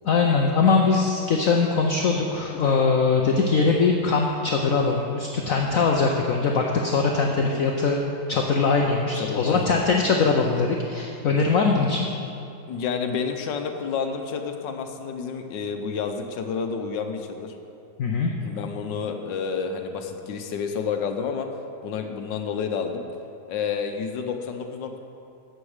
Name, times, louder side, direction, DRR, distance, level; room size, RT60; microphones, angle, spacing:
voice 1, 0.0-12.1 18.0-18.3, left 4 dB, 60° left, 1 dB, 1.0 m, -22 dB
voice 2, 9.1-9.7 12.7-17.5 18.4-21.5 21.8-23.0 23.5-25.0, left 6 dB, 80° left, 5 dB, 1.6 m, -30 dB
14.5 x 7.2 x 4.9 m, 2.7 s
omnidirectional pair, 2.0 m